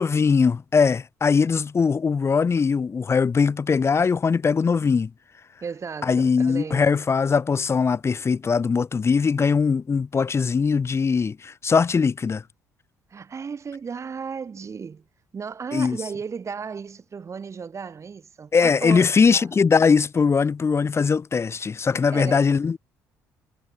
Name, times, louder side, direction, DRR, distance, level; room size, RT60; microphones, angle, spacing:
voice 1, 0.0-5.1 6.0-12.4 15.7-16.0 18.5-22.8, left 5 dB, 35° left, 1.6 m, -21 dB
voice 2, 5.6-7.0 13.1-15.0 15.3-19.5 21.9-22.5, right 6 dB, 40° right, 5.0 m, -35 dB
hypercardioid pair, 55°, 8 cm